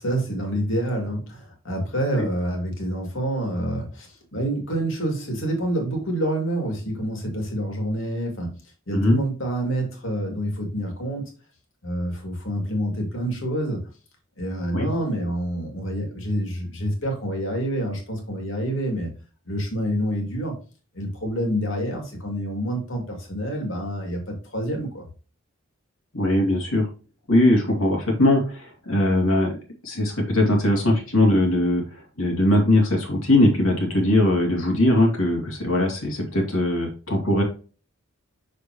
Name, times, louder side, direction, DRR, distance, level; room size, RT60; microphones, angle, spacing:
voice 1, 0.0-8.6 8.9-11.3 11.8-13.8 14.4-19.1 19.5-20.5 20.9-25.1, right 1 dB, 65° left, 2 dB, 2.5 m, -27 dB
voice 2, 26.1-26.9 27.3-29.6 29.8-31.8 32.2-37.4, left 1 dB, 85° left, 0 dB, 2.4 m, -20 dB
6.3 x 5.4 x 3.0 m, 0.36 s
head